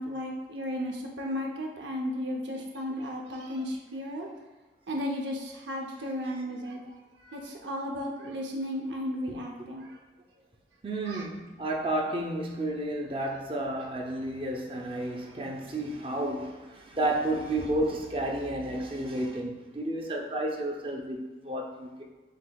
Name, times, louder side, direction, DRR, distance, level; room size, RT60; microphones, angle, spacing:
voice 1, 0.0-4.3 4.9-6.9 7.2-9.8 11.1-11.2, equal, 80° right, 0 dB, 0.7 m, -34 dB
voice 2, 9.3-9.7 10.8-22.0, right 1 dB, 30° right, 0 dB, 0.5 m, -32 dB
7.5 x 2.8 x 2.3 m, 1.2 s
head